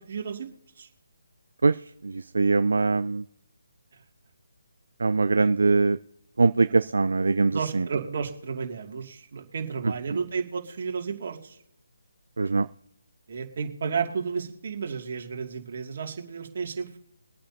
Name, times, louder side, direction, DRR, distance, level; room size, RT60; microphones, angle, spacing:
voice 1, 0.1-0.5 0.8-0.9 7.5-11.6 13.3-17.0, right 6 dB, 50° right, 2 dB, 2.4 m, -32 dB
voice 2, 2.0-3.2 5.0-6.0 6.4-7.8 12.4-12.7, right 3 dB, 70° right, 12 dB, 0.4 m, -22 dB
23.0 x 8.8 x 2.8 m, 0.82 s
figure-of-eight pair, 155°, 0 cm